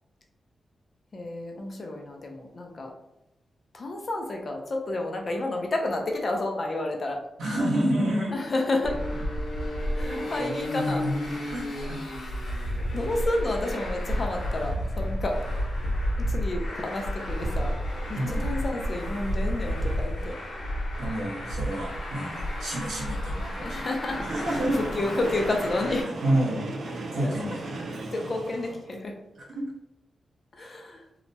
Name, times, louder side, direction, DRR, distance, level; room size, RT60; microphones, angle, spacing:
voice 1, 1.1-2.9 3.7-7.2 8.3-9.0 9.9-11.1 12.9-15.3 16.3-17.8 18.1-20.3 23.6-26.1 27.2-27.3 28.1-29.1 30.5-31.0, left 2 dB, 40° left, 2 dB, 0.5 m, -30 dB
voice 2, 7.4-8.4 10.1-11.1 11.4-12.0 18.1-18.5 21.0-23.8 24.3-24.8 26.2-26.7 27.1-27.9 29.5-29.7, right 1 dB, 90° right, -5 dB, 1.1 m, -29 dB
Traffic noise roadway noise, 8.8-26.0, equal, 85° left, 0.9 m, -31 dB
Train, 23.9-29.0, right 2 dB, 75° right, 0.4 m, -37 dB
2.8 x 2.1 x 2.6 m, 0.87 s
wide cardioid pair, 125°, 0 cm